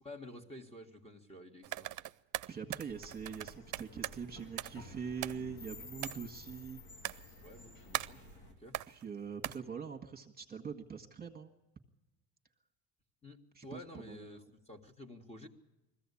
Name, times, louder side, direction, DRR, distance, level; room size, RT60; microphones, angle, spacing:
voice 1, 0.0-1.9 6.2-6.3 7.4-8.2 8.6-8.8 13.2-15.5, left 1 dB, 15° left, 4 dB, 2.0 m, -51 dB
sound 1, 1.6-4.2 4.6-4.9 5.2-5.6 6.0-6.2 7.0-7.5 7.9-8.3 8.7-9.0 9.4-9.6, right 16 dB, 50° right, 0.6 m, -40 dB
voice 2, 2.5-6.8 8.9-11.5 13.5-14.5, right 6 dB, 25° right, 2 dB, 1.7 m, -43 dB
sound 2, 2.9-8.5, left 2 dB, 80° left, 3.3 m, -52 dB
20.5 x 15.0 x 8.6 m, 1.0 s
supercardioid pair, 90°, 38 cm